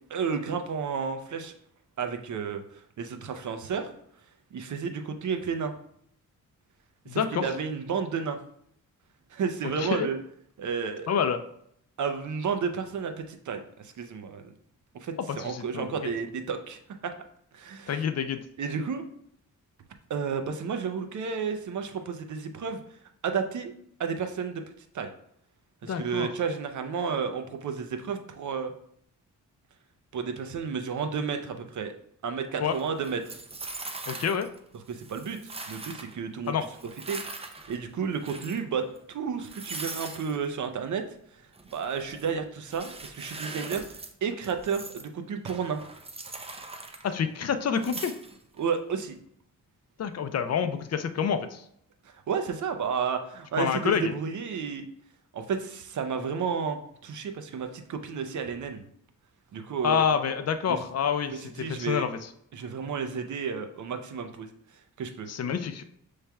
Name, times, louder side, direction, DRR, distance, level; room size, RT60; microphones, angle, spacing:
voice 1, 0.1-1.5 2.0-2.6 3.0-3.9 4.5-5.7 7.1-8.4 9.3-10.2 10.6-11.1 12.0-14.4 14.9-16.8 17.5-18.0 18.6-19.1 20.1-22.8 23.2-23.7 24.0-24.6 24.9-25.1 25.8-28.7 30.1-31.9 32.2-33.2 34.9-36.6 37.1-41.0 41.7-45.8 48.6-49.1 52.3-54.9 55.3-58.8 59.5-60.0 60.7-60.8 61.4-62.1 62.5-64.5 65.0-65.3, right 6 dB, 65° right, 7 dB, 0.6 m, -32 dB
voice 2, 7.1-7.5 9.8-10.1 11.1-11.4 15.3-15.9 17.9-18.4 25.9-26.3 32.6-32.8 34.1-34.5 36.5-36.6 47.0-48.1 50.0-51.6 53.6-54.1 59.8-62.1 65.3-65.8, left 7 dB, 50° left, 9 dB, 0.5 m, -27 dB
sound 1, 32.7-34.6 34.9-36.2 36.6-37.8 38.1-38.6 39.0-39.1 39.4-40.4 41.5-42.4 42.7-44.1 44.4-45.1 45.5-47.4 47.7-48.6, right 3 dB, 20° right, 0.5 m, -41 dB
6.8 x 3.2 x 2.3 m, 0.69 s
cardioid pair, 95°, 33 cm